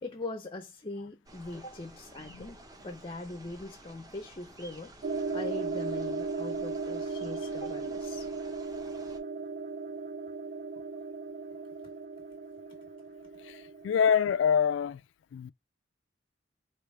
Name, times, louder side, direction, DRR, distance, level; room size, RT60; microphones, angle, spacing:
voice 1, 0.0-4.9 5.3-8.3, left 2 dB, 30° left, 0.6 m, -41 dB
sound 1, 1.3-9.2, right 1 dB, 20° right, 1.0 m, -52 dB
sound 2, 5.0-14.5, right 4 dB, 45° right, 0.4 m, -37 dB
voice 2, 13.4-15.0 15.3-15.5, left 7 dB, 75° left, 0.3 m, -26 dB
4.9 x 3.0 x 3.2 m
head